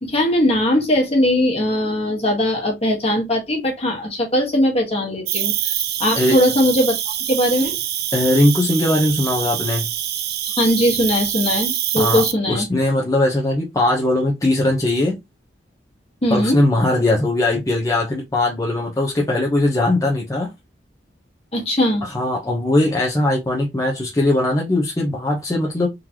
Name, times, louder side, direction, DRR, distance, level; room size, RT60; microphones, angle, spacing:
voice 1, 0.0-6.9 7.3-7.8 10.5-12.7 16.2-16.6 21.5-22.0, left 1 dB, 35° left, 1.5 m, -19 dB
Cricket, 5.3-12.3, right 11 dB, 60° right, 0.5 m, -25 dB
voice 2, 8.1-9.9 12.0-15.2 16.3-20.5 22.0-25.9, left 1 dB, 20° left, 0.8 m, -19 dB
3.8 x 3.1 x 2.9 m
head